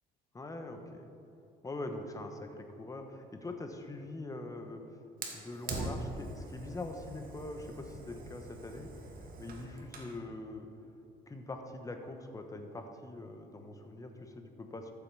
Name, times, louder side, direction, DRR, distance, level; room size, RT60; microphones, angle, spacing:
voice 1, 0.3-1.1 1.6-4.8 5.3-8.9 9.4-10.7 11.3-14.9, left 2 dB, 20° left, 5 dB, 1.2 m, -43 dB
Fire, 5.2-10.2, right 2 dB, 50° right, 1.8 m, -43 dB
13.5 x 7.6 x 4.9 m, 2.6 s
cardioid pair, 105°, 18 cm